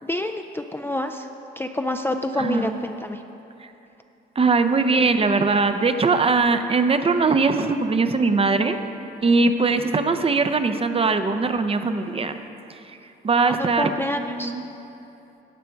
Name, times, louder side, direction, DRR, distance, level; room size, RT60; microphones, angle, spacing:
voice 1, 0.0-1.3 1.6-3.2 13.6-14.5, left 1 dB, 10° left, 6 dB, 0.4 m, -27 dB
voice 2, 2.4-2.7 3.6-3.7 4.4-8.8 9.2-12.4 12.7-13.0 13.2-13.9 14.2-14.6, right 4 dB, 30° right, 8 dB, 0.6 m, -21 dB
16.5 x 5.7 x 4.5 m, 2.9 s
cardioid pair, 90°, 20 cm